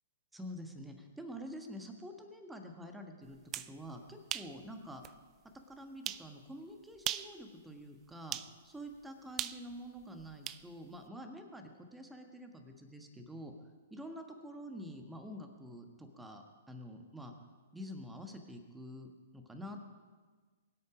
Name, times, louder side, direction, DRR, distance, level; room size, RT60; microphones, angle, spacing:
voice 1, 0.3-3.4 3.7-5.0 5.7-8.4 8.6-13.5 13.9-17.3 17.7-19.1 19.3-19.8, equal, 5° right, 5 dB, 1.6 m, -47 dB
sound 1, 3.3-3.7 4.3-4.5 5.0-5.1 6.0-6.3 7.0-7.3 8.3-8.5 9.4-10.6, right 12 dB, 30° right, 0.4 m, -38 dB
23.0 x 8.5 x 5.1 m, 1.4 s
figure-of-eight pair, 115°, 0 cm